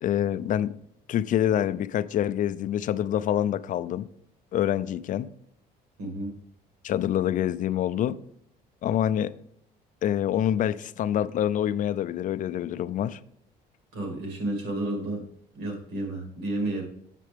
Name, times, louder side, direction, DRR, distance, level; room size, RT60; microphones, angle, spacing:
voice 1, 0.0-0.8 1.1-4.1 4.5-5.3 6.8-8.2 8.8-9.3 10.0-13.2, left 10 dB, 50° left, 0.4 m, -26 dB
voice 2, 6.0-6.4 13.9-15.2 15.5-16.8, right 1 dB, 85° right, 2.3 m, -31 dB
7.4 x 6.8 x 3.4 m
cardioid pair, 110°, 17 cm